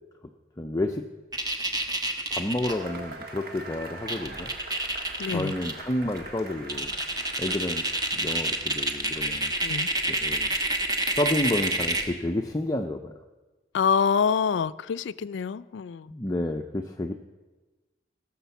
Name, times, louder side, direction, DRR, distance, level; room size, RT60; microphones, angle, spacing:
voice 1, 0.6-1.0 2.3-4.5 5.3-6.9 7.4-7.9 8.1-9.5 10.1-10.5 11.2-13.1 16.1-17.1, left 1 dB, 20° left, 4 dB, 0.5 m, -30 dB
sound 1, 1.3-2.7 3.8-3.9 4.1-5.7 6.2-6.3 6.7-12.1, right 2 dB, 20° right, 1.1 m, -28 dB
Cheering / Applause / Crowd, 2.6-9.9, right 2 dB, 55° right, 1.7 m, -43 dB
voice 2, 5.2-5.6 9.6-9.9 13.7-16.1, left 6 dB, 85° left, 17 dB, 0.4 m, -26 dB
16.5 x 6.5 x 7.0 m, 1.2 s
head